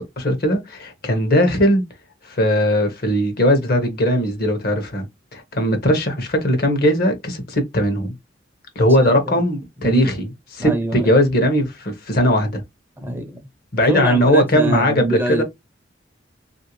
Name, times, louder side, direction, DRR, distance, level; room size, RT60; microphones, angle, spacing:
voice 1, 0.0-1.8 2.3-5.1 5.3-8.1 8.8-12.6 13.7-15.4, equal, 50° left, 0.9 m, -19 dB
voice 2, 9.0-9.3 9.8-10.1 10.6-11.1 13.0-13.4 13.8-15.4, right 1 dB, 10° right, 0.6 m, -25 dB
3.0 x 2.6 x 2.9 m
head